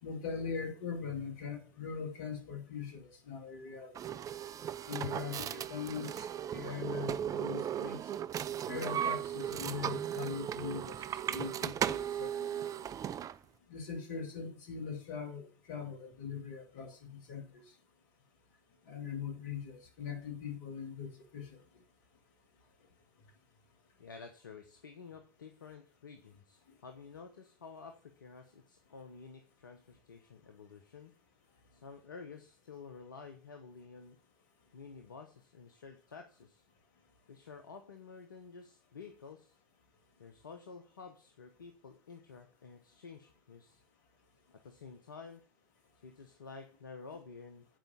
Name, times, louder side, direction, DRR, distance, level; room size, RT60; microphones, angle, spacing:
voice 1, 0.0-4.2 4.9-8.0 8.7-12.6 13.7-17.5 18.9-21.6, left 6 dB, 65° left, 2.6 m, -41 dB
sound 1, 3.9-13.4, right 9 dB, 35° right, 0.5 m, -36 dB
voice 2, 24.0-31.1 31.7-34.2 34.7-36.6 37.3-39.5 40.2-43.8 44.6-45.4 46.0-47.7, left 5 dB, 85° left, 1.0 m, -51 dB
8.9 x 5.2 x 7.2 m
hypercardioid pair, 75°, 10 cm